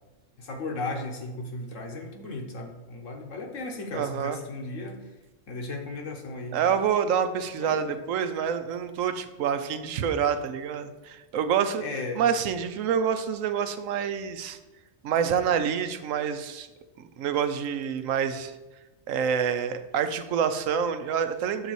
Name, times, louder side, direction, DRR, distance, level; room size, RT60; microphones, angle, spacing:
voice 1, 0.4-5.1 5.5-6.8 7.6-8.0 11.8-12.2, left 2 dB, 75° left, 2 dB, 1.5 m, -36 dB
voice 2, 3.9-4.4 6.5-11.8 12.2-14.6 15.0-16.7 17.0-18.5 19.1-21.7, right 7 dB, 85° right, 9 dB, 1.0 m, -27 dB
6.7 x 4.0 x 6.2 m, 1.1 s
omnidirectional pair, 1.3 m